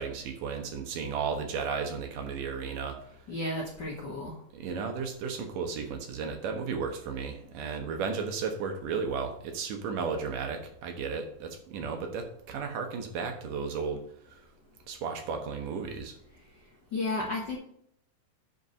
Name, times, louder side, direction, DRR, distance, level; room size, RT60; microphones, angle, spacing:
voice 1, 0.0-3.0 4.5-14.4 14.9-16.2, right 5 dB, 75° right, 4 dB, 2.8 m, -34 dB
voice 2, 3.3-4.3 16.9-17.6, left 2 dB, 50° left, -2 dB, 1.3 m, -32 dB
8.2 x 4.7 x 6.6 m, 0.67 s
omnidirectional pair, 3.9 m